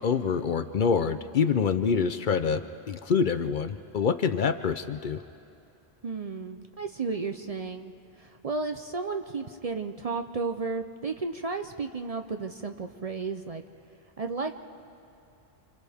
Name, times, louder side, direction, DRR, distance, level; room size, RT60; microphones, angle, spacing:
voice 1, 0.0-2.6 2.9-5.2, left 6 dB, 55° left, 10 dB, 0.7 m, -26 dB
voice 2, 6.0-13.6 14.2-14.6, right 4 dB, 45° right, 6 dB, 0.6 m, -33 dB
29.0 x 27.0 x 3.5 m, 2.6 s
omnidirectional pair, 1.1 m